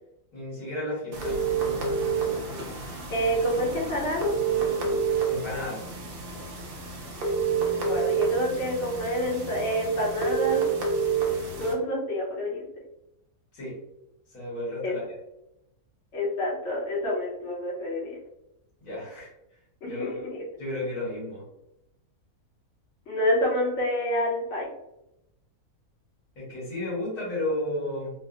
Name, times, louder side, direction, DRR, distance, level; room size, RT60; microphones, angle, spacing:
voice 1, 0.3-1.4 5.3-5.8 13.5-13.8 14.3-15.2 18.8-19.3 19.8-20.1 20.6-21.4 26.3-28.1, left 1 dB, 80° left, -7 dB, 1.7 m, -33 dB
sound 1, 1.1-11.7, right 5 dB, 60° right, 0.6 m, -29 dB
voice 2, 3.1-4.3 7.8-10.6 11.6-12.6 14.8-14.9 16.1-18.2 19.8-20.3 23.1-24.7, equal, 60° left, -6 dB, 1.0 m, -27 dB
3.3 x 2.0 x 2.4 m, 0.85 s
omnidirectional pair, 1.6 m